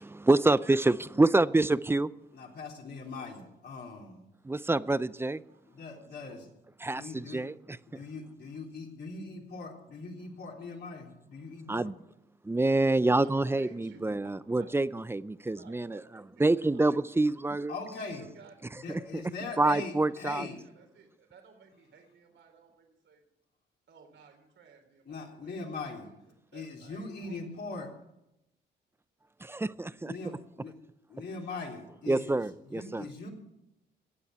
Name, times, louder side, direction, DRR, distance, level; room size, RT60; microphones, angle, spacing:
voice 1, 0.0-2.1 4.4-5.4 6.8-7.8 11.7-12.0 12.4-16.0 16.4-17.7 18.9-19.2 19.6-20.5 29.4-30.4 32.1-33.1, right 2 dB, 10° right, 17 dB, 0.5 m, -27 dB
voice 2, 2.3-4.3 5.7-6.4 6.9-7.4 7.9-11.9 17.7-18.2 18.8-20.6 25.1-26.1 26.5-27.9 30.0-30.7 31.1-32.4 32.7-33.3, left 3 dB, 55° left, 0 dB, 3.5 m, -41 dB
voice 3, 3.0-3.5 5.5-6.4 13.2-14.7 15.6-17.1 18.1-23.2 23.9-27.9, right 5 dB, 70° right, 4 dB, 3.5 m, -57 dB
17.0 x 7.1 x 9.4 m, 0.88 s
cardioid pair, 90°, 20 cm